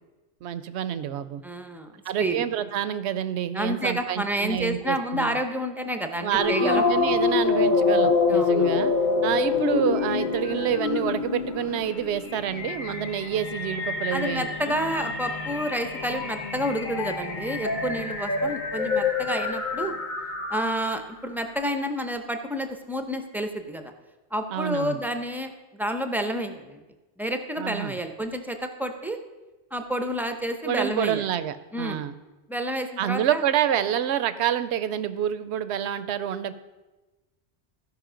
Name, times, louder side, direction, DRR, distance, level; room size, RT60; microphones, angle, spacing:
voice 1, 0.4-1.4 2.1-5.4 6.2-8.9 9.2-14.8 24.5-25.0 27.6-28.0 30.6-32.1 33.0-36.5, right 10 dB, 75° right, 14 dB, 0.9 m, -28 dB
voice 2, 1.4-1.9 2.2-2.5 3.5-6.8 8.3-8.9 14.1-20.0 20.5-23.9 24.3-26.8 27.2-29.2 29.7-31.3 31.7-32.0 32.5-33.4, equal, ahead, 6 dB, 0.5 m, -29 dB
sound 1, 6.4-20.9, left 4 dB, 45° left, 1.1 m, -26 dB
14.5 x 5.5 x 5.0 m, 1.1 s
omnidirectional pair, 1.2 m